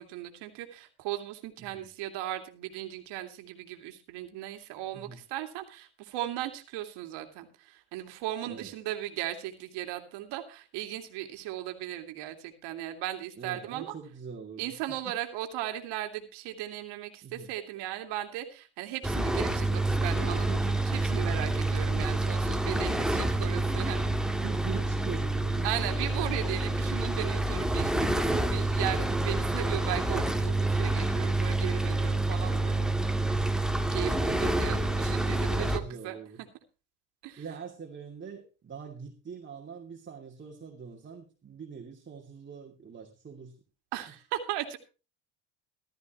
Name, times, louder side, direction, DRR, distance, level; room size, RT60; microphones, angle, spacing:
voice 1, 0.0-13.9 14.6-24.2 25.6-32.9 33.2-33.4 33.9-36.2 37.2-37.4 43.9-44.8, right 13 dB, 70° right, 5 dB, 2.6 m, -37 dB
voice 2, 13.4-14.7 17.2-17.5 21.3-21.6 22.7-23.0 24.4-26.6 34.6-35.1 35.5-36.4 37.4-43.5, right 6 dB, 25° right, 1 dB, 2.6 m, -43 dB
sound 1, 19.0-35.8, right 2 dB, ahead, 1.7 m, -28 dB
15.0 x 13.0 x 3.0 m, 0.33 s
supercardioid pair, 100°, 42 cm